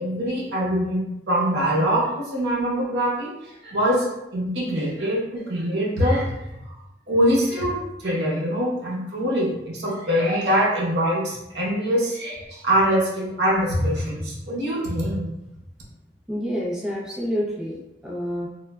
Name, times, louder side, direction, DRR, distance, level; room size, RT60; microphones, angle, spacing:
voice 1, 0.0-4.1 4.3-6.3 7.1-15.3, equal, 65° right, -3 dB, 0.7 m, -23 dB
voice 2, 16.3-18.5, equal, 5° right, -5 dB, 0.4 m, -28 dB
3.1 x 2.2 x 2.2 m, 0.91 s
head